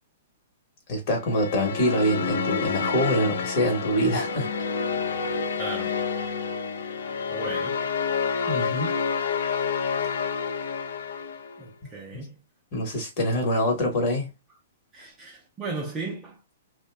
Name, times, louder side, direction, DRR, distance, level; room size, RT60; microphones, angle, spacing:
voice 1, 0.9-4.5 8.5-8.9 12.1-12.2 12.7-14.3, equal, 35° left, 1.0 m, -25 dB
sound 1, 1.2-11.6, left 5 dB, 65° left, 0.4 m, -29 dB
voice 2, 5.6-6.0 7.3-7.8 10.0-10.2 11.6-12.4 14.9-16.5, right 3 dB, 15° right, 0.5 m, -36 dB
2.6 x 2.2 x 3.3 m
hypercardioid pair, 170°, 0 cm